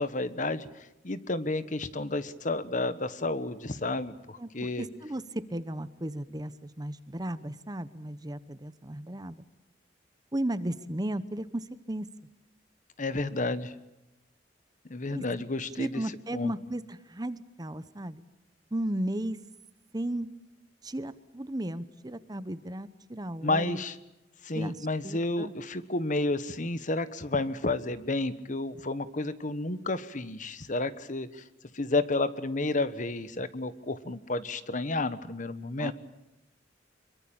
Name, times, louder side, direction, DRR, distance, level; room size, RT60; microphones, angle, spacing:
voice 1, 0.0-4.9 13.0-13.7 14.9-16.0 16.3-16.5 23.4-24.0 24.4-31.4 31.7-35.9, left 2 dB, 45° left, 14 dB, 1.3 m, -31 dB
voice 2, 4.8-9.4 10.3-12.1 15.1-15.2 15.8-18.2 18.7-19.4 19.9-20.3 20.8-23.8 24.5-25.5 35.8-35.9, right 1 dB, 20° right, 14 dB, 1.0 m, -35 dB
26.0 x 23.0 x 8.8 m, 0.93 s
head